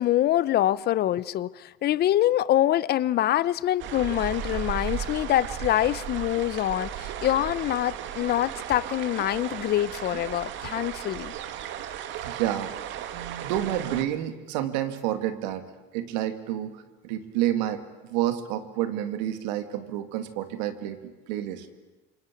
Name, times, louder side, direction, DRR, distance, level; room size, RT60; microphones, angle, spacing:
voice 1, 0.0-11.3, left 13 dB, 50° left, 0.9 m, -25 dB
sound 1, 3.8-14.0, right 10 dB, 60° right, 2.1 m, -35 dB
voice 2, 12.2-12.7 13.1-15.6 15.9-21.7, right 12 dB, 90° right, 2.4 m, -29 dB
27.0 x 24.0 x 8.5 m
supercardioid pair, 110°, 21 cm